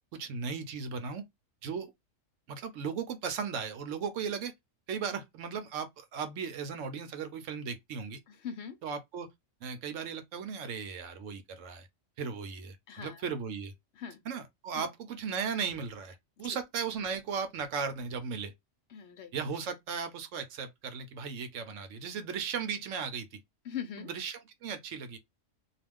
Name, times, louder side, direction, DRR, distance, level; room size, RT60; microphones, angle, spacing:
voice 1, 0.1-1.2 1.6-1.9 2.5-4.5 4.9-8.2 8.8-9.3 9.6-11.9 12.2-13.7 14.2-18.5 19.3-23.4 24.0-25.2, right 6 dB, 75° right, 0.9 m, -36 dB
voice 2, 8.3-8.8 12.9-13.2 14.0-14.2 14.7-14.9 18.9-19.3 23.7-24.1, left 8 dB, 65° left, 0.8 m, -41 dB
2.4 x 2.3 x 3.4 m
omnidirectional pair, 1.4 m